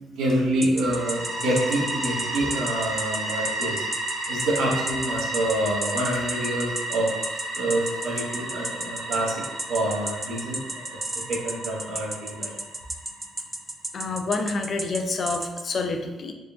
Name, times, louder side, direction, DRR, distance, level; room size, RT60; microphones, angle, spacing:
voice 1, 0.0-3.8 4.3-7.1 7.5-9.3 9.7-10.9 11.3-12.5, right 1 dB, 85° right, -3 dB, 1.0 m, -27 dB
sound 1, 0.6-15.6, right 1 dB, 15° right, 0.3 m, -32 dB
sound 2, 0.8-13.5, right 1 dB, 50° right, 1.1 m, -33 dB
voice 2, 13.9-16.3, left 3 dB, 50° left, 5 dB, 0.5 m, -28 dB
3.6 x 2.3 x 3.6 m, 1.1 s
cardioid pair, 90°, 0 cm